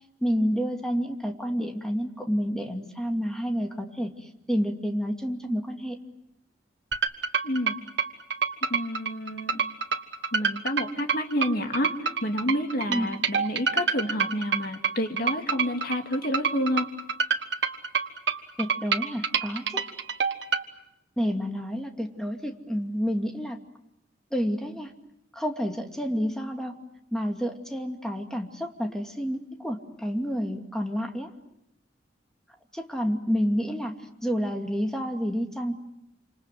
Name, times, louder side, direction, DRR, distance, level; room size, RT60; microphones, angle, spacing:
voice 1, 0.2-6.0 12.9-13.1 18.6-19.8 21.2-23.6 24.3-24.9 25.3-26.8 27.1-31.3 32.7-33.9 34.2-35.7, equal, 5° left, 3 dB, 2.5 m, -29 dB
sound 1, 6.9-20.6, right 5 dB, 65° right, 1.6 m, -27 dB
voice 2, 7.4-7.8 8.7-9.6 10.3-11.9 12.2-16.9, equal, 55° left, 4 dB, 2.4 m, -29 dB
28.0 x 27.5 x 7.7 m, 0.83 s
head